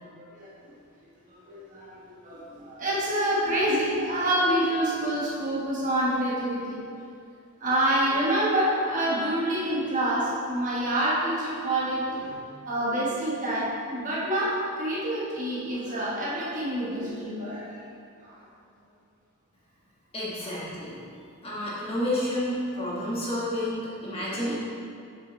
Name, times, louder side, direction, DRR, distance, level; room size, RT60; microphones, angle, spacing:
voice 1, 0.3-0.8 1.3-6.8 7.6-18.4 20.4-20.5 24.1-24.5, right 1 dB, 35° right, -6 dB, 1.3 m, -27 dB
voice 2, 20.1-21.0 21.4-24.6, left 1 dB, 25° left, -7 dB, 1.5 m, -30 dB
7.6 x 6.7 x 3.3 m, 2.4 s
head